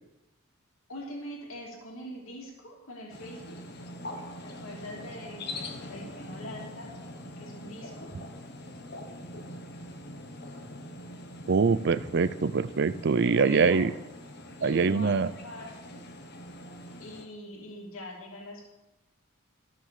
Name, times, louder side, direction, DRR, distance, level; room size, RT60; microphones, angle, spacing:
voice 1, 0.9-3.6 4.4-7.0 7.4-8.2 13.2-13.8 14.6-16.0 17.0-18.6, equal, 85° left, -1 dB, 2.7 m, -43 dB
sound 1, 3.1-17.2, left 1 dB, 50° left, 1.4 m, -43 dB
voice 2, 11.5-13.9 14.6-15.3, right 5 dB, 55° right, 14 dB, 0.5 m, -24 dB
13.0 x 6.6 x 6.7 m, 1.0 s
head